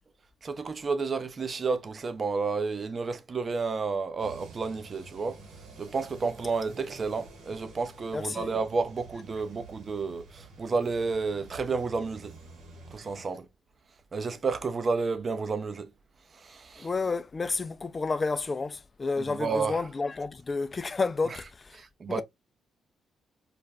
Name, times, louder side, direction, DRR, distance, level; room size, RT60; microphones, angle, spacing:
voice 1, 0.4-5.4 5.8-12.4 12.9-13.5 14.1-15.9 16.3-16.9 19.2-19.8 21.3-21.4 21.8-22.2, right 4 dB, 45° right, 0.5 m, -31 dB
sound 1, 4.2-13.3, right 4 dB, 80° right, 1.0 m, -50 dB
voice 2, 8.1-8.5 16.8-21.7 22.1-22.2, left 4 dB, 35° left, 0.3 m, -30 dB
2.4 x 2.2 x 3.3 m
supercardioid pair, 55°, 0 cm